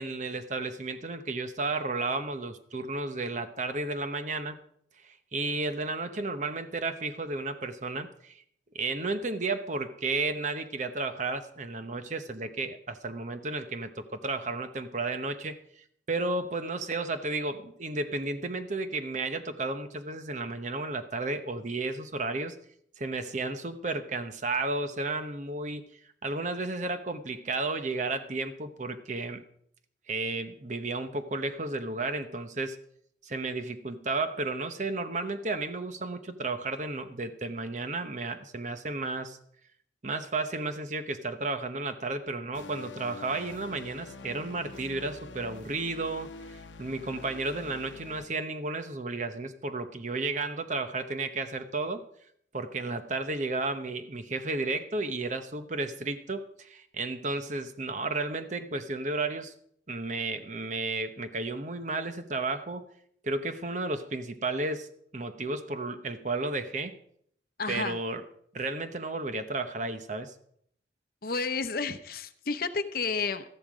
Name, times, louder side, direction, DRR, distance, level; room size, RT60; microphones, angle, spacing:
voice 1, 0.0-4.6 5.0-8.4 8.7-22.5 23.0-25.9 26.2-29.4 30.1-32.8 33.2-39.4 40.0-52.0 52.5-59.5 59.9-62.8 63.2-64.9 65.1-67.0 67.7-68.3 68.5-70.3, right 3 dB, 40° right, 9 dB, 0.9 m, -33 dB
sound 1, 42.5-48.3, left 3 dB, 80° left, 0.8 m, -46 dB
voice 2, 67.6-68.0 71.2-73.4, left 4 dB, 50° left, 10 dB, 0.8 m, -31 dB
13.5 x 11.0 x 5.0 m, 0.67 s
head